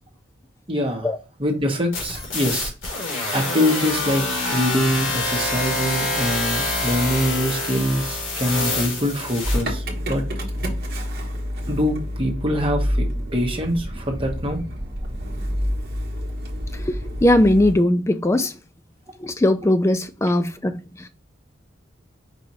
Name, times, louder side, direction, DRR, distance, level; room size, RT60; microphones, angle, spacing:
voice 1, 0.7-1.1 1.4-2.7 3.3-4.2 4.5-10.2 11.7-14.6, equal, 25° right, 1.1 m, -24 dB
sound 1, 1.9-9.6, left 2 dB, 85° left, 2.0 m, -26 dB
Motor vehicle (road) / Engine starting, 9.4-17.7, equal, 50° right, 1.0 m, -28 dB
voice 2, 16.7-18.6 19.2-21.1, left 1 dB, 15° left, 0.3 m, -20 dB
4.9 x 2.6 x 4.1 m
head